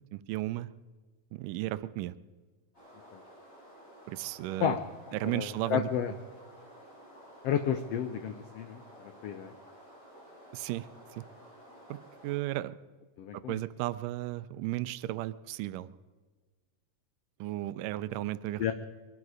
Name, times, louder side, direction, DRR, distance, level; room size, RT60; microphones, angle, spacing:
voice 1, 0.1-0.7 1.3-2.2 4.1-4.8 5.1-5.9 10.5-11.3 11.9-12.0 12.2-12.8 13.3-15.9 17.4-18.7, right 16 dB, 90° right, 15 dB, 2.2 m, -34 dB
sound 1, 2.7-12.4, equal, 25° left, 7.2 m, -53 dB
voice 2, 5.1-6.1 7.4-9.5 13.2-13.6 18.6-18.7, left 9 dB, 90° left, 9 dB, 1.4 m, -32 dB
23.0 x 12.0 x 4.9 m, 1.4 s
omnidirectional pair, 3.7 m